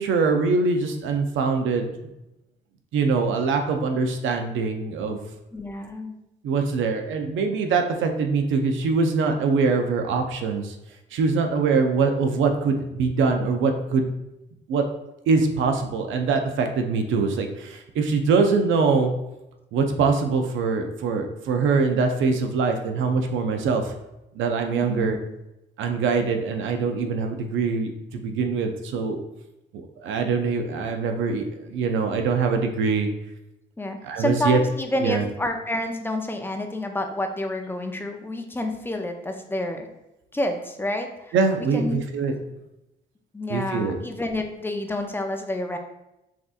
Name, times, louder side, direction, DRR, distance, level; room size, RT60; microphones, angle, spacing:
voice 1, 0.0-1.9 2.9-5.2 6.4-10.7 11.1-14.1 14.7-14.8 15.3-19.1 19.7-23.9 24.3-25.2 25.8-29.2 30.0-33.1 34.0-34.6 35.0-35.2 41.3-42.3 43.5-43.9, right 4 dB, 75° right, 5 dB, 0.6 m, -23 dB
voice 2, 5.5-6.2 24.8-25.2 33.8-39.9 40.3-41.3 41.7-42.0 43.3-45.8, left 1 dB, 10° left, 4 dB, 0.5 m, -29 dB
5.8 x 2.7 x 2.4 m, 0.91 s
cardioid pair, 90°, 20 cm